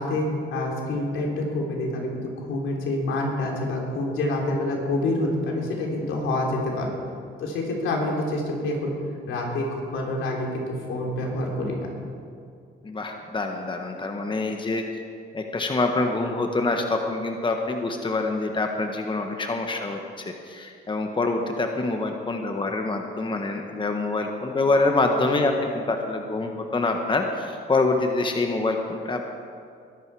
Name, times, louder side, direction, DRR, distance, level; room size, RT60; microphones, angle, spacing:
voice 1, 0.0-2.1 2.4-6.9 7.4-8.9 9.3-11.9, left 1 dB, 80° left, -1 dB, 3.5 m, -27 dB
voice 2, 12.8-14.8 15.3-29.2, left 3 dB, 25° left, 3 dB, 1.4 m, -26 dB
21.5 x 11.5 x 4.9 m, 2.3 s
cardioid pair, 90°, 20 cm